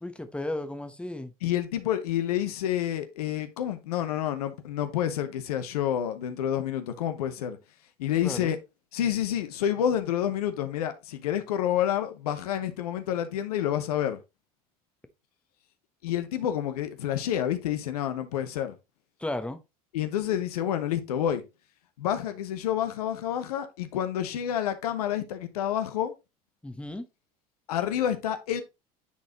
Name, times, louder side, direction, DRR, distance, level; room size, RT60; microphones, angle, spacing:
voice 1, 0.0-1.3 8.2-8.5 19.2-19.6 26.6-27.1, left 1 dB, 5° left, 1.0 m, -34 dB
voice 2, 1.4-7.6 8.0-8.6 8.9-14.2 16.0-18.8 19.9-21.4 22.0-26.1 27.7-28.6, left 10 dB, 80° left, 0.9 m, -28 dB
9.6 x 4.1 x 2.9 m
hypercardioid pair, 70°, 19 cm